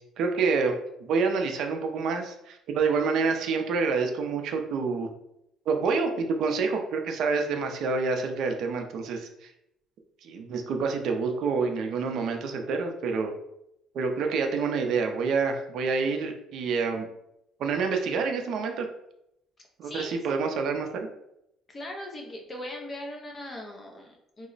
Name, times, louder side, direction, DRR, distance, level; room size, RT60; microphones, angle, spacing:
voice 1, 0.2-5.1 5.7-9.5 10.2-13.3 13.9-17.1 17.6-18.9 19.8-21.1, right 4 dB, 55° right, 4 dB, 0.4 m, -27 dB
voice 2, 19.8-20.2 21.7-24.5, left 1 dB, 20° left, 1 dB, 0.5 m, -39 dB
2.9 x 2.0 x 3.9 m, 0.81 s
cardioid pair, 175°, 0 cm